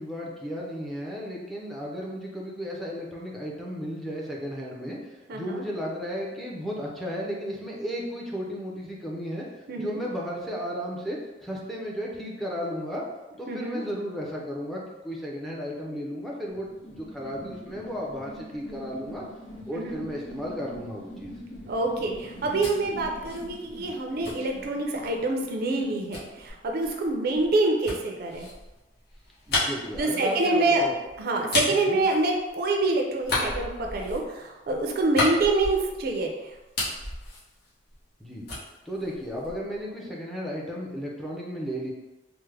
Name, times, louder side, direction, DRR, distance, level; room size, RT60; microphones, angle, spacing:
voice 1, 0.0-9.4 9.8-13.0 13.4-19.2 19.7-21.3 29.5-31.0 31.5-32.0 38.2-38.4 38.9-41.9, equal, ahead, -4 dB, 0.5 m, -34 dB
voice 2, 5.3-5.6 9.7-10.0 13.5-13.8 19.7-20.0 21.7-28.5 30.0-30.9 31.2-36.5, right 2 dB, 55° right, 1 dB, 0.4 m, -26 dB
sound 1, 16.5-26.5, equal, 25° left, 1.4 m, -44 dB
sound 2, 22.2-25.2 26.1-32.8 33.2-36.2 36.5-38.2 38.5-39.8, left 2 dB, 60° left, 0.9 m, -33 dB
3.3 x 2.0 x 3.2 m, 1.1 s
head